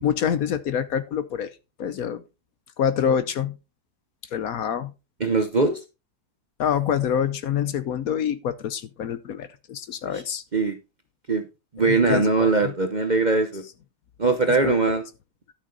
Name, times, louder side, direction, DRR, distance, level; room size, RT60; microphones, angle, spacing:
voice 1, 0.0-1.5 1.8-2.2 2.8-3.5 4.3-4.9 6.6-10.4 11.8-12.7 14.6-14.7, left 8 dB, 65° left, 1.1 m, -26 dB
voice 2, 5.2-5.8 10.1-10.2 10.5-10.8 11.3-11.4 11.7-13.6 14.2-15.0, right 3 dB, 35° right, 0.8 m, -21 dB
12.0 x 6.5 x 3.9 m
omnidirectional pair, 1.8 m